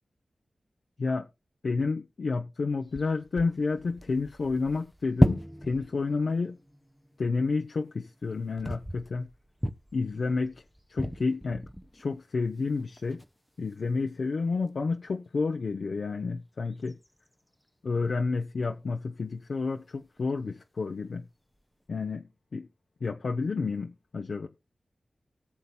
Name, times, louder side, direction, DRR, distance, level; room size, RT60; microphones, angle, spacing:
voice 1, 1.6-6.6 7.2-9.3 9.9-10.6 10.9-11.6 11.9-13.2 13.6-16.9 17.8-21.2 21.9-22.2 22.5-22.7 23.0-24.5, left 4 dB, 70° left, 0.7 m, -30 dB
sound 1, 2.8-12.2 12.7-13.4 13.7-13.8 16.7-17.5 20.0-20.3 21.6-21.7, equal, ahead, 0.7 m, -33 dB
18.5 x 7.0 x 2.3 m
wide cardioid pair, 65°, 0 cm